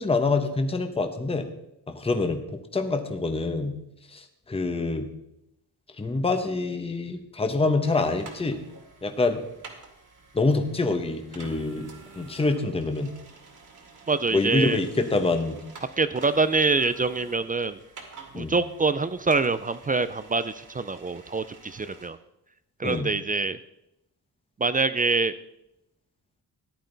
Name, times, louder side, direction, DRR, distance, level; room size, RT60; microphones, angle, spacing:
voice 1, 0.0-1.5 1.9-2.4 2.7-3.8 4.1-5.0 6.0-8.6 9.0-9.4 10.3-11.9 12.1-13.1 14.3-15.6 18.3-18.6 22.8-23.1, left 3 dB, 15° left, 6 dB, 0.9 m, -26 dB
sound 1, 7.8-22.1, right 4 dB, 50° right, 2.3 m, -49 dB
voice 2, 14.1-14.8 16.0-17.8 18.3-22.2 22.8-23.6 24.6-25.3, right 3 dB, 25° right, 13 dB, 0.3 m, -25 dB
14.5 x 10.5 x 3.9 m, 0.84 s
wide cardioid pair, 150°, 39 cm